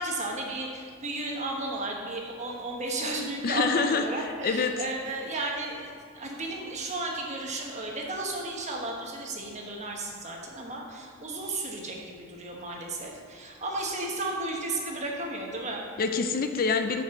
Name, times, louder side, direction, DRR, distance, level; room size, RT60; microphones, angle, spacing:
voice 1, 0.0-15.8, right 2 dB, 35° right, -1 dB, 1.2 m, -34 dB
voice 2, 3.4-4.7 16.0-17.0, left 4 dB, 45° left, 7 dB, 0.5 m, -26 dB
5.9 x 5.6 x 6.9 m, 2.2 s
head